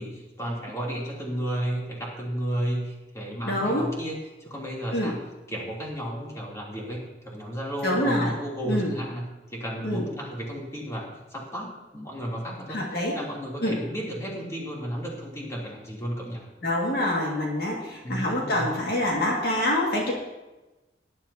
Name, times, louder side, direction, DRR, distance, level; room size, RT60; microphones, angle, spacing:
voice 1, 0.0-5.2 5.5-9.2 9.5-12.8 13.1-16.5 18.0-18.6, right 1 dB, 15° left, -4 dB, 3.1 m, -33 dB
voice 2, 3.4-3.9 4.9-5.1 7.8-8.3 8.6-8.9 9.8-10.0 12.7-13.2 13.6-13.8 16.6-20.1, left 1 dB, 60° left, -3 dB, 2.1 m, -26 dB
18.5 x 11.0 x 2.9 m, 1.1 s
head